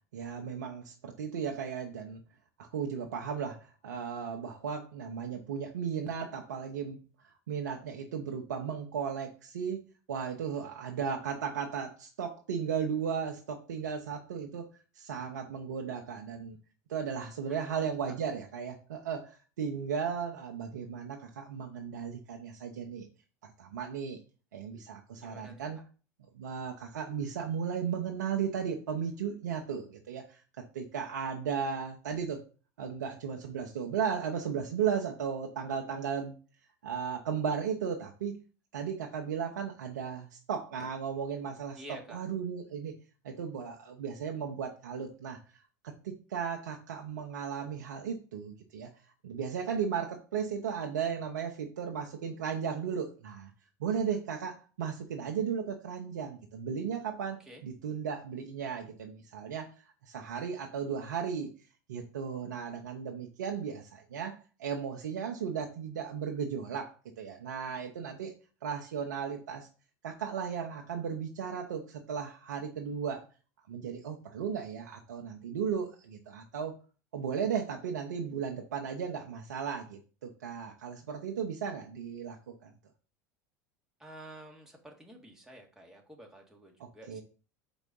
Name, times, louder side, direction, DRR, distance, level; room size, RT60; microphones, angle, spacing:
voice 1, 0.1-2.2 2.6-7.0 7.5-14.7 14.9-16.6 16.9-23.1 23.4-24.2 24.5-25.8 26.3-30.4 30.7-32.4 32.8-36.4 36.8-38.4 38.7-41.8 42.1-42.9 43.2-45.4 45.8-48.9 49.2-53.5 53.8-61.5 61.9-68.3 68.6-69.7 70.0-73.2 73.7-76.7 77.1-82.4 82.6-82.7 87.1-87.2, right 7 dB, 80° right, 2 dB, 0.8 m, -35 dB
voice 2, 17.5-18.2 25.2-25.8 41.8-42.2 57.4-57.6 84.0-87.2, right 1 dB, 5° right, 0 dB, 1.9 m, -50 dB
4.6 x 4.1 x 5.4 m, 0.37 s
hypercardioid pair, 80°, 10 cm